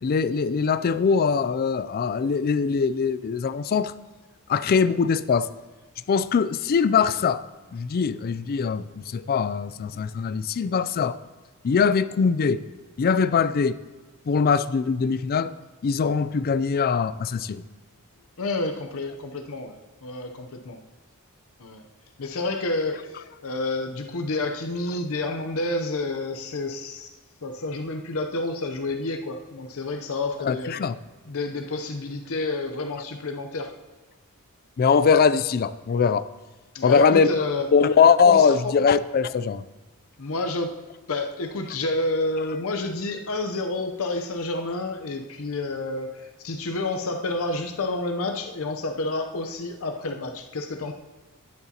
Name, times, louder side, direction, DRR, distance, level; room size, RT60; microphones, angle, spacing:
voice 1, 0.0-3.9 4.5-5.5 6.1-7.4 7.7-11.2 11.6-12.6 13.0-13.8 14.3-15.5 15.8-17.6 30.4-30.9 34.8-36.2 36.8-37.3 37.7-39.6, left 6 dB, 45° left, 15 dB, 0.3 m, -21 dB
voice 2, 18.4-20.8 21.6-21.8 22.2-27.1 27.4-30.8 31.2-33.7 36.7-37.7 38.2-38.8 40.2-40.7 41.1-50.9, left 2 dB, 65° left, 5 dB, 0.7 m, -29 dB
12.0 x 9.7 x 2.9 m, 1.3 s
head